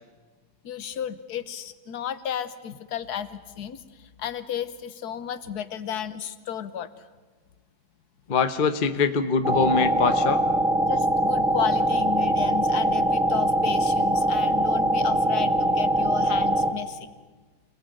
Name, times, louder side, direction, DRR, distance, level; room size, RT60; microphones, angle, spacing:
voice 1, 0.6-6.9 10.8-17.1, left 9 dB, 75° left, 12 dB, 1.6 m, -33 dB
voice 2, 8.3-10.4, left 5 dB, 35° left, 9 dB, 1.0 m, -23 dB
sound 1, 9.4-16.7, right 1 dB, 5° right, 1.9 m, -22 dB
28.5 x 18.5 x 9.2 m, 1.4 s
omnidirectional pair, 1.7 m